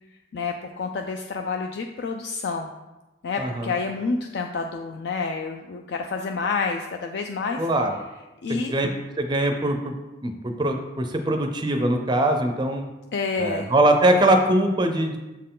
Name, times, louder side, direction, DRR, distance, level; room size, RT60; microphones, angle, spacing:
voice 1, 0.3-2.7 3.2-7.7 8.4-8.7 13.1-13.7, left 4 dB, 65° left, 3 dB, 0.4 m, -28 dB
voice 2, 3.4-3.7 7.6-7.9 8.5-8.9 9.2-9.9 10.2-12.9 13.4-15.2, right 1 dB, 25° right, 5 dB, 0.5 m, -22 dB
7.2 x 4.4 x 3.7 m, 1.1 s
head